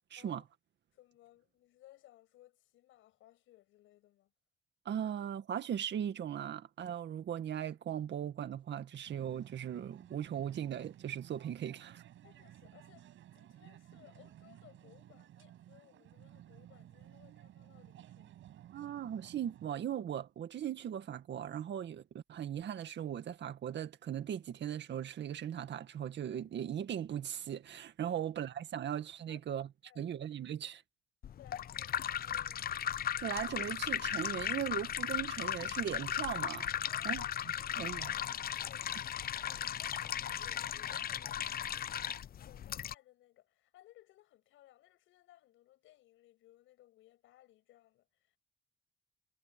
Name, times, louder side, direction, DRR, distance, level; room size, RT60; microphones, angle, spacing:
voice 1, 0.1-0.4 4.9-12.0 18.7-29.7 30.0-30.8 33.2-36.7 37.1-37.2 37.8-38.1, right 9 dB, 65° right, 2.0 m, -38 dB
voice 2, 0.9-4.3 12.2-18.4 28.1-28.2 29.3-30.1 31.4-32.6 36.8-38.0 38.3-38.8 39.4-48.4, left 14 dB, 90° left, 6.6 m, -62 dB
sound 1, 9.1-19.7, right 12 dB, 80° right, 6.9 m, -56 dB
sound 2, 31.2-42.9, left 10 dB, 50° left, 0.6 m, -37 dB
cardioid pair, 90°, 20 cm